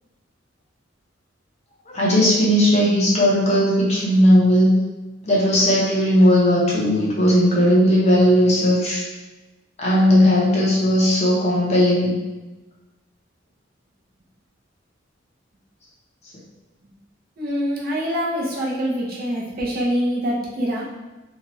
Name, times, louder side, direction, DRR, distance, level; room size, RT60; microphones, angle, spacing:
voice 1, 1.9-4.7 5.2-9.0 9.8-12.1, equal, 35° left, -6 dB, 0.7 m, -17 dB
voice 2, 17.4-20.9, equal, 45° right, -5 dB, 0.7 m, -24 dB
2.9 x 2.3 x 3.0 m, 1.1 s
head